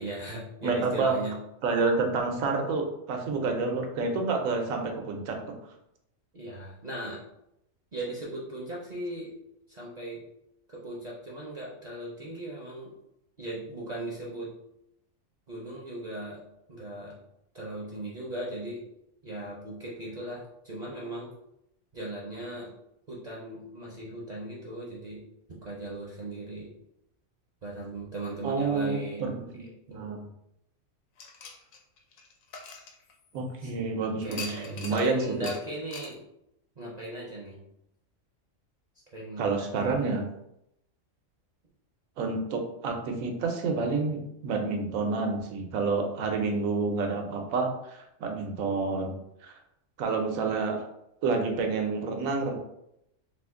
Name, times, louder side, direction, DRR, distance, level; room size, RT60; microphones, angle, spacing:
voice 1, 0.0-1.4 6.3-7.2 7.9-9.4 9.7-10.3 10.7-12.9 13.4-14.6 15.5-16.4 16.7-17.2 17.5-18.8 19.2-21.3 21.9-22.7 23.1-25.2 25.5-26.7 27.6-30.1 33.6-33.7 34.0-36.2 36.8-37.6 39.1-40.2, right 1 dB, 45° right, -5 dB, 0.5 m, -38 dB
voice 2, 0.6-1.2 1.6-5.6 28.4-30.3 33.3-35.5 39.4-40.3 42.2-49.1 49.4-49.5 50.0-50.8 51.2-52.6, right 4 dB, 85° right, 3 dB, 1.1 m, -29 dB
sound 1, 31.2-33.6 34.3-35.1 35.4-35.6 35.9-36.1, left 4 dB, 90° left, 1.0 m, -42 dB
2.7 x 2.5 x 3.5 m, 0.80 s
omnidirectional pair, 1.4 m